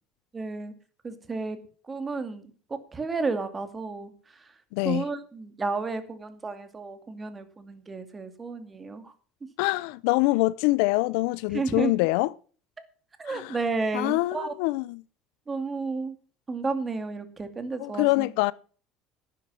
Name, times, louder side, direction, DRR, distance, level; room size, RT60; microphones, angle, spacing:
voice 1, 0.3-0.7 1.0-1.6 1.9-4.1 4.8-9.1 11.5-11.9 13.2-14.5 15.5-16.1 16.5-18.3, right 3 dB, 20° right, 2.3 m, -32 dB
voice 2, 4.7-5.1 9.6-12.3 13.3-13.6 13.9-15.0 17.8-18.5, left 21 dB, 80° left, 0.5 m, -25 dB
12.0 x 10.0 x 6.3 m
supercardioid pair, 115°, 0 cm